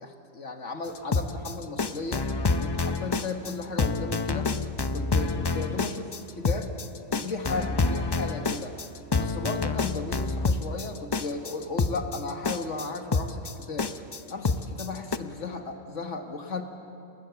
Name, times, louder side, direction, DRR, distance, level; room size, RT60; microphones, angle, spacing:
voice 1, 0.0-2.3 2.6-4.5 4.9-6.7 7.1-8.8 9.2-13.9 14.3-16.6, left 3 dB, 70° left, 5 dB, 1.8 m, -35 dB
sound 1, 0.9-15.2, left 3 dB, 30° left, 0.5 m, -27 dB
28.0 x 19.5 x 7.0 m, 2.8 s
omnidirectional pair, 1.3 m